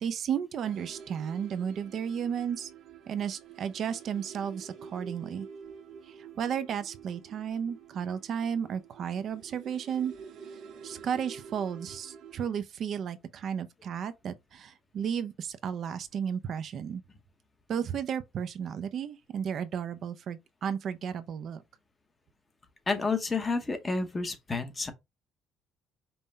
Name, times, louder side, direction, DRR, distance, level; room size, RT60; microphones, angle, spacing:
voice 1, 0.0-2.7 3.1-5.5 6.0-10.1 10.5-17.0 17.7-21.6, right 8 dB, 50° right, 0.4 m, -33 dB
sound 1, 0.6-12.5, right 6 dB, 65° right, 0.9 m, -48 dB
voice 2, 22.9-24.9, left 4 dB, 20° left, 0.8 m, -30 dB
5.4 x 2.2 x 4.0 m
cardioid pair, 140°, 0 cm